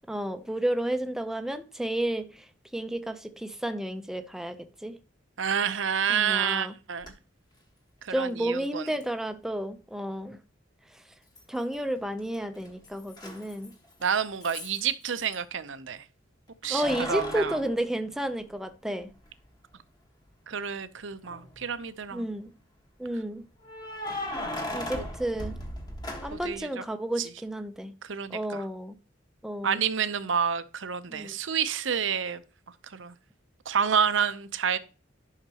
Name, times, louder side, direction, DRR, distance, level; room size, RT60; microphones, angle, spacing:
voice 1, 0.1-2.4 2.7-5.0 6.1-6.7 8.1-10.4 11.5-13.7 16.7-19.1 22.1-22.5 23.0-23.5 24.7-25.6 26.2-27.9 28.3-29.0 29.4-29.8 31.1-31.4, right 1 dB, 5° right, 0.6 m, -31 dB
voice 2, 5.4-7.1 8.0-8.9 14.0-16.0 16.6-17.6 20.5-22.3 25.0-25.1 26.3-26.8 27.2-27.3 28.0-28.7 29.6-32.4 32.9-33.1 33.7-34.8, right 7 dB, 75° right, 0.7 m, -29 dB
Keys jangling, 7.0-7.1 9.0-9.1 11.4-11.9 12.2-15.4 16.6-18.8 19.2-19.3 21.1-21.7 23.6-26.6, left 1 dB, 20° left, 1.5 m, -38 dB
11.0 x 5.8 x 2.9 m
head